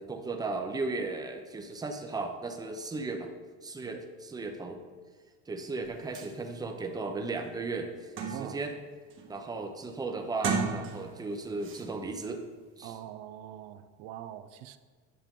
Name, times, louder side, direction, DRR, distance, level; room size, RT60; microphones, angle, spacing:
voice 1, 0.0-3.3 3.6-4.8 5.5-8.7 9.3-12.4 12.8-12.9, right 3 dB, 10° right, 4 dB, 0.8 m, -36 dB
sound 1, 5.8-5.9 6.2-6.3 6.9-7.0 7.4-8.7 9.1-9.5 10.3-11.3 11.6-11.9, right 5 dB, 40° right, 1.3 m, -35 dB
voice 2, 12.8-14.8, right 11 dB, 75° right, 11 dB, 0.7 m, -43 dB
10.0 x 6.7 x 3.8 m, 1.5 s
cardioid pair, 145°, 33 cm